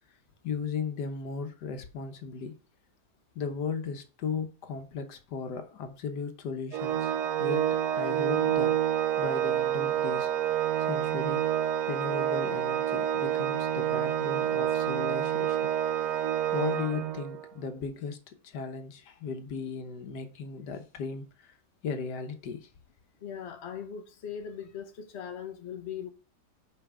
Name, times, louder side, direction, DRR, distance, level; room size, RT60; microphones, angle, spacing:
voice 1, 0.4-2.5 3.3-7.1 7.4-7.6 7.9-8.8 9.2-10.3 10.9-11.4 11.9-15.7 16.5-18.2 18.4-21.5 21.8-22.7, left 5 dB, 85° left, 1.5 m, -36 dB
Organ, 6.7-17.5, right 10 dB, 80° right, 1.2 m, -28 dB
voice 2, 23.2-26.1, left 8 dB, 45° left, 1.2 m, -39 dB
5.7 x 5.1 x 4.8 m
omnidirectional pair, 1.7 m